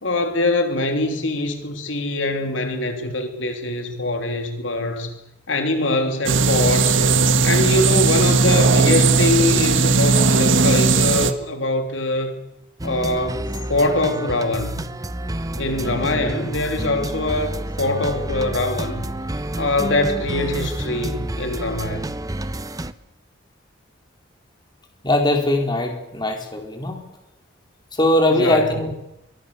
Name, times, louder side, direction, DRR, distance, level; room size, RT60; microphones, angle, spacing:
voice 1, 0.0-5.1 5.5-7.0 7.4-12.3 12.8-13.4 13.7-14.9 15.6-19.1 19.5-22.1 28.3-28.7, left 2 dB, 80° left, 3.2 m, -23 dB
sound 1, 6.3-11.3, right 4 dB, 80° right, 1.8 m, -17 dB
sound 2, 12.8-22.9, right 1 dB, 20° right, 0.9 m, -29 dB
voice 2, 25.0-27.0 27.9-29.0, left 1 dB, 25° left, 4.4 m, -20 dB
25.0 x 24.0 x 7.1 m
head